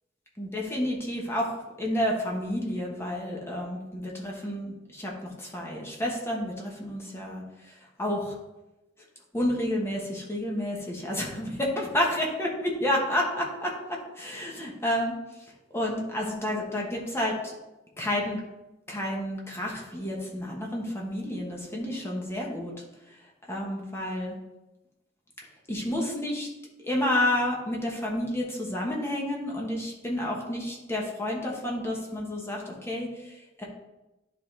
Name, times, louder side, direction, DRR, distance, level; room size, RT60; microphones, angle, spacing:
voice 1, 0.4-1.5 1.8-8.4 9.3-11.5 11.8-15.1 15.7-17.5 18.0-18.4 18.9-22.7 23.5-24.3 25.7-26.5 26.8-33.6, left 1 dB, 15° left, -2 dB, 1.2 m, -30 dB
10.5 x 3.7 x 3.3 m, 1.0 s
head